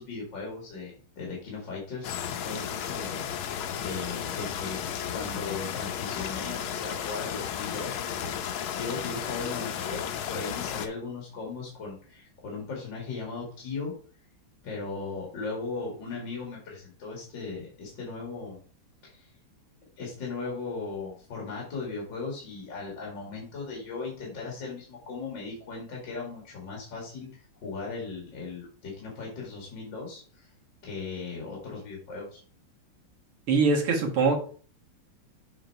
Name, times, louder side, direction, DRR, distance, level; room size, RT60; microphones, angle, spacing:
voice 1, 0.0-4.8 5.1-13.9 14.6-18.6 19.0-19.3 20.0-30.5 30.8-32.4, left 4 dB, 55° left, -3 dB, 2.6 m, -37 dB
sound 1, 2.0-10.9, left 9 dB, 75° left, 1.5 m, -34 dB
voice 2, 33.5-34.4, right 4 dB, 75° right, 0 dB, 2.4 m, -22 dB
8.0 x 3.8 x 4.5 m, 0.43 s
omnidirectional pair, 2.4 m